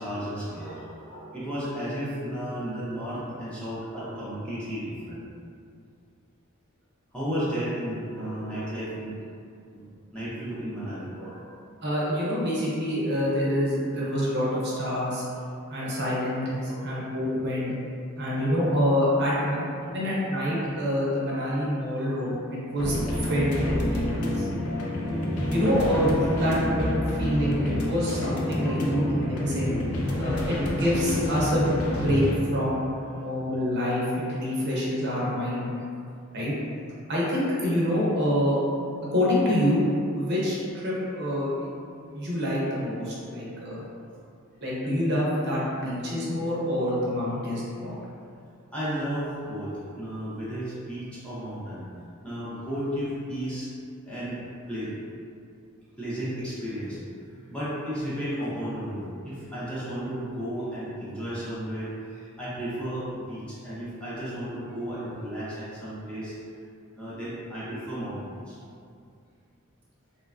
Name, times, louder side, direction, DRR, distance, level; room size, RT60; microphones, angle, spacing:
voice 1, 0.0-5.2 7.1-9.2 9.7-9.9 10.1-11.5 16.7-16.9 19.3-19.4 19.8-20.0 22.0-22.1 26.3-26.4 28.6-29.1 32.9-33.2 48.7-51.9 52.2-53.7 54.1-54.9 56.0-57.0 57.5-66.3 67.0-68.2 68.5-68.6, equal, 5° left, -11 dB, 0.6 m, -34 dB
voice 2, 11.8-15.2 15.7-17.7 18.2-19.6 19.8-23.0 23.3-24.5 25.5-26.9 27.2-29.8 30.2-32.8 33.1-35.7 36.3-36.5 37.1-38.6 39.1-39.8 40.1-41.7 42.1-43.8 44.6-48.0, equal, 50° right, -7 dB, 0.6 m, -26 dB
sound 1, 22.8-32.4, left 1 dB, 90° left, 0.4 m, -28 dB
3.1 x 2.2 x 2.4 m, 2.4 s
head